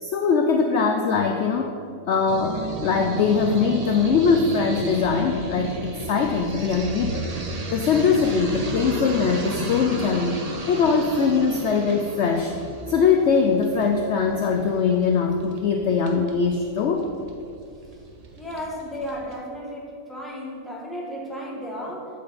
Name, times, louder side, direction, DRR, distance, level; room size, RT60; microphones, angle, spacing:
voice 1, 0.0-1.7 2.1-7.3 7.7-10.4 10.7-12.6 12.9-17.1, left 5 dB, 70° left, 3 dB, 0.6 m, -21 dB
sound 1, 2.3-19.4, right 2 dB, 40° right, 0.6 m, -34 dB
voice 2, 18.4-22.1, equal, ahead, -4 dB, 1.3 m, -34 dB
8.4 x 7.7 x 4.1 m, 2.4 s
omnidirectional pair, 1.7 m